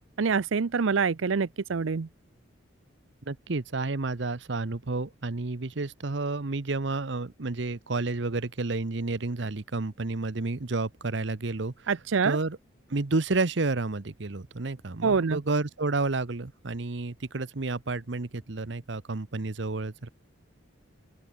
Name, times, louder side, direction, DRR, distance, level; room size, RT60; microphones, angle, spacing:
voice 1, 0.2-2.1 11.9-12.4 15.0-15.4, right 5 dB, 85° right, 0.6 m, -25 dB
voice 2, 3.3-11.9 12.2-12.6 12.9-20.1, right 3 dB, 65° right, 0.9 m, -30 dB
open air
head